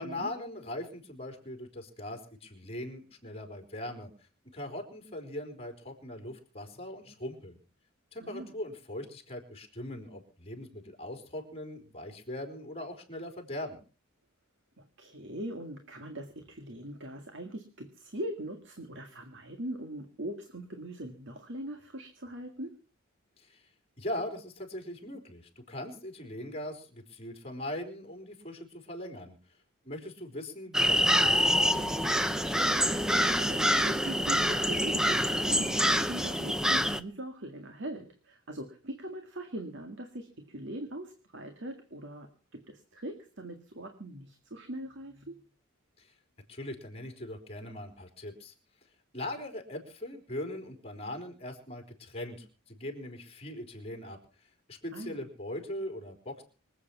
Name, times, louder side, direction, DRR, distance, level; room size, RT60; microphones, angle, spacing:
voice 1, 0.0-7.6 8.1-13.8 23.4-23.7 24.0-29.4 29.8-31.8 46.0-46.1 46.5-48.5 49.1-56.4, left 1 dB, 30° left, 5 dB, 4.0 m, -40 dB
voice 2, 8.2-8.5 14.8-22.7 32.8-45.4 54.9-55.3, right 1 dB, 55° right, 6 dB, 1.9 m, -41 dB
sound 1, 30.7-37.0, equal, 5° right, 0.7 m, -26 dB
25.0 x 8.5 x 5.9 m, 0.38 s
head